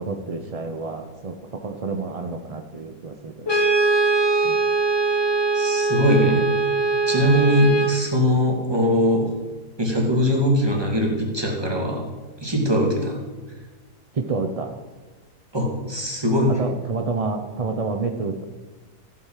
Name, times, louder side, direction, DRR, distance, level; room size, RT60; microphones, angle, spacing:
voice 1, 0.0-3.6 4.4-4.6 14.1-14.7 16.5-18.4, right 4 dB, 45° right, 5 dB, 0.4 m, -29 dB
Brass instrument, 3.5-8.0, right 3 dB, 20° left, 1.1 m, -21 dB
voice 2, 5.5-6.5 7.1-9.3 9.8-12.0 12.4-13.2 15.5-16.5, equal, 15° right, 0 dB, 2.5 m, -21 dB
14.5 x 8.6 x 5.8 m, 1.3 s
omnidirectional pair, 1.8 m